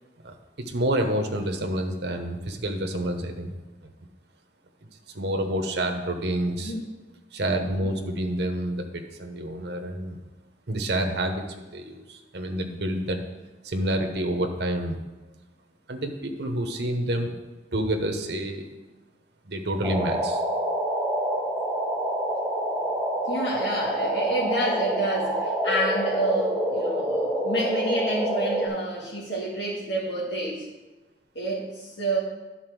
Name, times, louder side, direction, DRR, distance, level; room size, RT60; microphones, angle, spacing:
voice 1, 0.2-3.6 5.1-6.7 7.3-10.2 10.7-13.2 13.6-15.0 15.9-17.4 17.7-18.7 19.5-20.4, right 1 dB, 60° right, 4 dB, 0.9 m, -28 dB
sound 1, 19.8-28.7, right 1 dB, ahead, 2.1 m, -27 dB
voice 2, 23.3-30.6 31.4-32.2, right 2 dB, 70° left, -6 dB, 1.9 m, -29 dB
11.0 x 4.3 x 6.1 m, 1.2 s
head